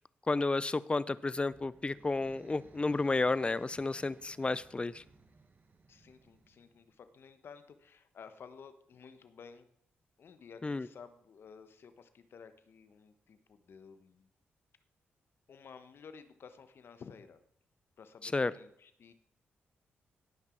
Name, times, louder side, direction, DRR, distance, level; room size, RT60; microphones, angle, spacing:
voice 1, 0.3-5.0 10.6-10.9 18.2-18.5, left 3 dB, 25° left, 18 dB, 0.5 m, -32 dB
sound 1, 1.2-7.1, right 3 dB, 45° right, 1.5 m, -61 dB
voice 2, 5.9-9.7 10.2-14.3 15.5-17.4 18.0-19.1, left 6 dB, 65° left, 10 dB, 1.2 m, -53 dB
17.5 x 6.0 x 4.5 m, 0.70 s
cardioid pair, 60°, 4 cm